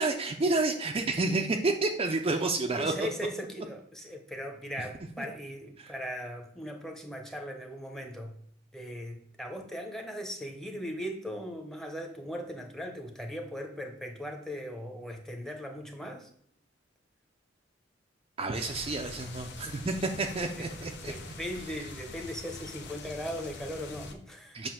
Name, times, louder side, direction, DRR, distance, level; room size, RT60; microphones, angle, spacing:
voice 1, 0.0-3.1 5.2-5.3 5.8-5.9 18.4-21.1 24.5-24.7, right 3 dB, 30° right, 3 dB, 0.5 m, -30 dB
voice 2, 2.8-8.4 8.7-16.3 20.5-24.6, equal, ahead, 3 dB, 0.8 m, -39 dB
sound 1, 18.5-24.1, left 3 dB, 60° left, 0.8 m, -44 dB
7.6 x 2.7 x 5.8 m, 0.67 s
head